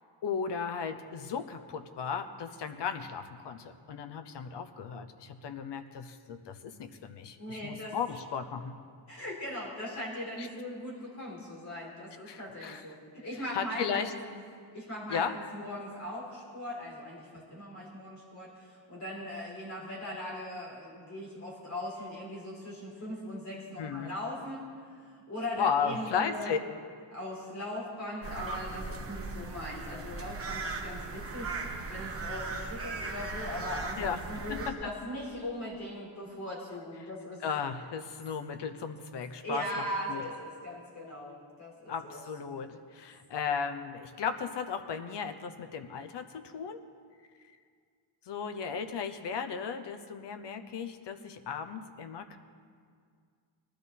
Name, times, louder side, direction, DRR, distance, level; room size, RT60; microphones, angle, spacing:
voice 1, 0.2-8.8 10.4-10.5 12.2-12.8 13.5-14.1 15.1-15.4 23.8-24.1 25.6-26.6 34.0-34.8 37.0-37.1 37.4-40.2 41.9-46.8 48.3-52.4, left 6 dB, 60° left, 9 dB, 0.9 m, -35 dB
voice 2, 7.4-7.9 9.1-14.1 14.7-24.6 25.1-26.5 27.1-37.4 39.4-42.2, left 1 dB, 35° left, -4 dB, 4.1 m, -40 dB
sound 1, 28.2-34.7, right 3 dB, 30° right, 1.3 m, -38 dB
19.5 x 13.0 x 4.2 m, 2.1 s
wide cardioid pair, 170°, 47 cm